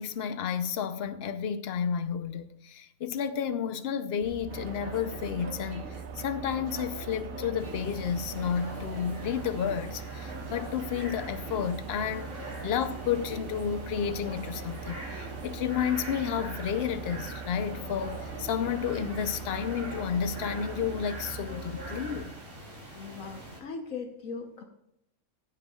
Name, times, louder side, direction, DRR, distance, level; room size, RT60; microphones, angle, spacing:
voice 1, 0.0-12.3 12.6-22.3, left 8 dB, 55° left, 0.8 m, -31 dB
sound 1, 4.2-22.2, right 2 dB, 15° right, 2.5 m, -42 dB
sound 2, 4.5-21.4, right 8 dB, 70° right, 1.1 m, -45 dB
sound 3, 7.6-23.6, right 1 dB, 55° right, 3.6 m, -45 dB
voice 2, 22.9-24.6, left 4 dB, 70° left, 1.4 m, -39 dB
15.5 x 8.2 x 2.4 m
omnidirectional pair, 1.5 m